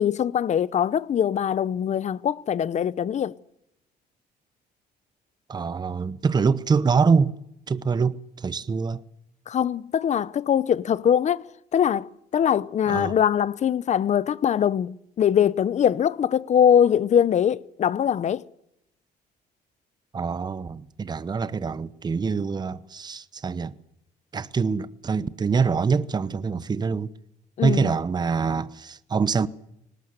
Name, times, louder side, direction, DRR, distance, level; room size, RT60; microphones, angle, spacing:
voice 1, 0.0-3.3 9.5-11.4 11.7-18.4 27.6-27.9, left 9 dB, 45° left, 0.8 m, -22 dB
voice 2, 5.5-7.3 7.7-9.0 12.9-13.2 20.1-23.8 24.3-27.1 27.6-29.5, right 5 dB, 25° right, 0.9 m, -25 dB
19.5 x 18.0 x 7.9 m
cardioid pair, 110°, 17 cm